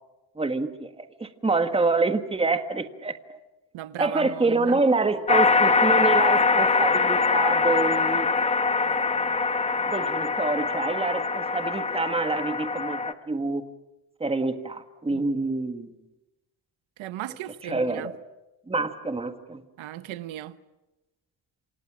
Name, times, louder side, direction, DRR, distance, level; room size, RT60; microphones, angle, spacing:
voice 1, 0.4-3.4 4.0-8.3 9.9-13.6 14.2-15.9 17.6-18.2 18.7-19.6, right 3 dB, 10° right, 1.5 m, -27 dB
voice 2, 3.7-4.8 15.1-15.2 17.0-18.1 19.8-20.6, right 13 dB, 85° right, 1.2 m, -36 dB
sound 1, 5.3-13.1, left 4 dB, 15° left, 1.0 m, -23 dB
27.5 x 27.0 x 6.2 m
cardioid pair, 150°, 46 cm